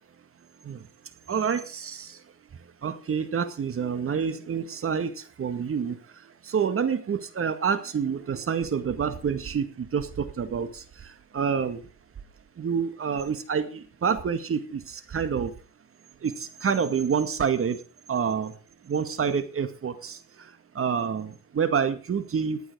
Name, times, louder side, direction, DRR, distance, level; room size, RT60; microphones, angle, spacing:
voice 1, 1.3-2.2 2.8-6.0 6.5-10.8 11.3-11.8 12.6-15.5 16.2-17.8 18.1-18.5 18.9-20.2 20.8-22.6, right 6 dB, 45° right, 10 dB, 2.0 m, -27 dB
15.0 x 9.8 x 4.9 m, 0.36 s
cardioid pair, 90°, 30 cm